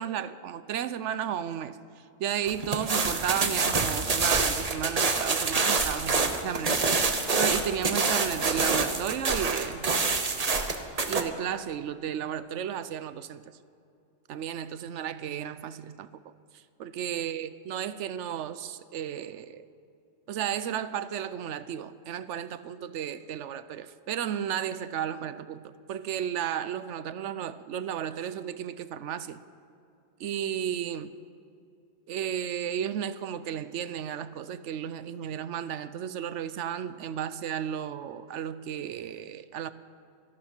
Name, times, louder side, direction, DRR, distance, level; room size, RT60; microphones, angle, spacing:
voice 1, 0.0-1.8 2.2-7.0 7.4-9.9 11.1-13.4 14.3-16.3 16.8-19.7 20.3-29.4 30.2-31.1 32.1-39.7, right 9 dB, 75° right, 14 dB, 0.9 m, -33 dB
sound 1, 2.5-11.2, right 4 dB, 35° right, 0.9 m, -26 dB
25.5 x 11.5 x 4.4 m, 2.5 s
omnidirectional pair, 1.3 m